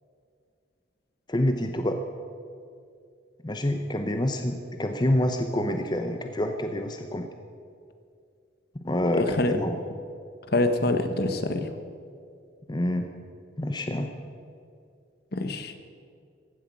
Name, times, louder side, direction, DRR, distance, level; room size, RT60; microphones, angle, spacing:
voice 1, 1.3-2.0 3.4-7.3 8.8-9.8 12.7-13.1 13.6-14.1, left 1 dB, 20° left, 6 dB, 0.8 m, -27 dB
voice 2, 9.2-9.6 10.5-11.7 15.3-15.7, left 2 dB, 55° left, 8 dB, 1.2 m, -25 dB
15.5 x 10.0 x 9.1 m, 2.3 s
head